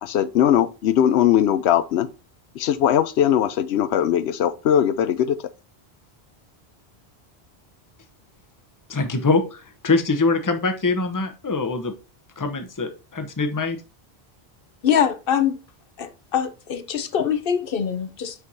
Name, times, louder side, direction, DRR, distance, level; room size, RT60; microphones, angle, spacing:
voice 1, 0.0-2.1 2.6-5.4, left 10 dB, 90° left, 0.9 m, -20 dB
voice 2, 8.9-11.9 12.4-13.8, left 3 dB, 20° left, 0.7 m, -23 dB
voice 3, 14.8-15.6 16.0-18.3, left 8 dB, 60° left, 0.9 m, -23 dB
6.3 x 5.7 x 2.6 m
omnidirectional pair, 1.1 m